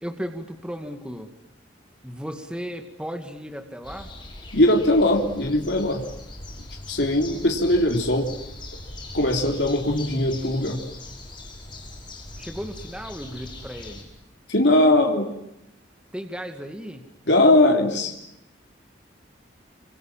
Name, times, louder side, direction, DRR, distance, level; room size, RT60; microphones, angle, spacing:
voice 1, 0.0-1.3 2.0-4.1 12.4-14.0 16.1-17.0, equal, 5° right, 5 dB, 2.2 m, -35 dB
sound 1, 3.8-14.0, left 2 dB, 25° left, 5.5 m, -40 dB
voice 2, 4.5-6.0 6.9-8.3 9.1-10.8 14.5-15.3 17.3-18.1, left 1 dB, 60° left, 2 dB, 3.5 m, -20 dB
27.0 x 26.5 x 7.4 m, 0.83 s
head